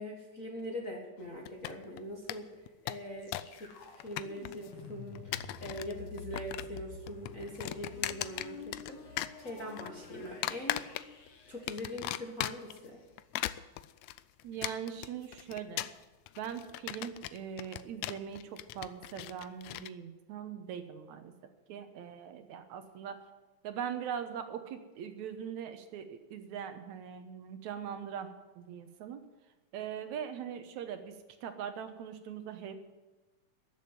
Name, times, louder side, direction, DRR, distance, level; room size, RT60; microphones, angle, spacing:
voice 1, 0.0-2.5 2.8-10.8 11.5-13.0, equal, 35° left, 0 dB, 1.4 m, -42 dB
sound 1, 1.5-2.0 2.3-2.4 2.7-3.6 3.8-4.7 5.2-5.9 6.2-6.8 7.1-8.9 9.2-9.9 10.4-11.3 11.7-12.8 13.2-19.9, left 15 dB, 85° left, 1.5 m, -38 dB
sound 2, 3.2-13.0, left 5 dB, 65° left, 2.9 m, -50 dB
voice 2, 14.4-15.9 16.4-21.3 21.7-23.2 23.6-28.3 28.6-29.2 29.7-31.2 31.4-32.7, right 8 dB, 70° right, 8 dB, 2.2 m, -41 dB
14.0 x 7.3 x 9.4 m, 1.2 s
omnidirectional pair, 3.6 m